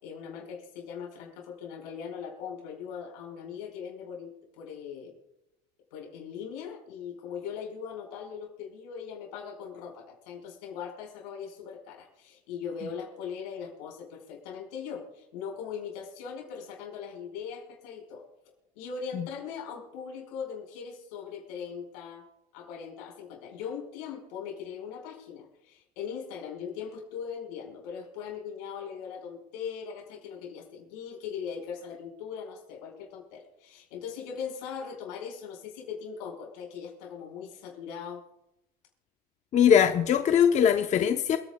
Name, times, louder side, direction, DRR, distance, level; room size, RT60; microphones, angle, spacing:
voice 1, 0.0-5.1 5.9-18.2 18.7-22.2 22.5-38.2, left 7 dB, 85° left, 4.8 m, -40 dB
voice 2, 39.5-41.4, left 8 dB, 35° left, 0.7 m, -21 dB
28.5 x 9.5 x 2.2 m
supercardioid pair, 115°, 21 cm